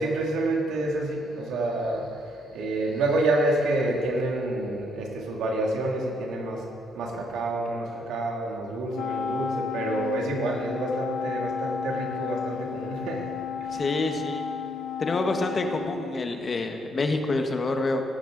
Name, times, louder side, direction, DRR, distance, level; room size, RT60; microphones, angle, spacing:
voice 1, 0.0-6.7 6.9-13.3 13.6-13.8, right 2 dB, 80° right, -1 dB, 2.3 m, -28 dB
Wind instrument woodwind instrument, 8.9-16.6, left 7 dB, 75° left, 0.4 m, -33 dB
voice 2, 13.7-14.4 15.0-18.0, left 2 dB, 40° left, 5 dB, 1.2 m, -27 dB
17.5 x 9.9 x 3.9 m, 2.5 s
cardioid pair, 90°, 0 cm